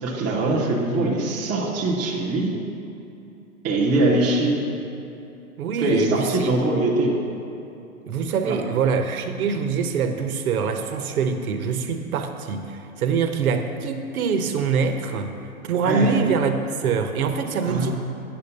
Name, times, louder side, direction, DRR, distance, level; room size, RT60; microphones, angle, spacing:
voice 1, 0.0-2.5 3.6-4.6 5.8-7.2 8.4-8.6 15.8-16.1 17.6-17.9, right 2 dB, 10° right, -6 dB, 0.3 m, -22 dB
voice 2, 5.6-6.5 8.0-15.3 15.6-17.9, right 5 dB, 75° right, 7 dB, 1.0 m, -24 dB
9.6 x 5.3 x 6.7 m, 2.8 s
hypercardioid pair, 145°, 44 cm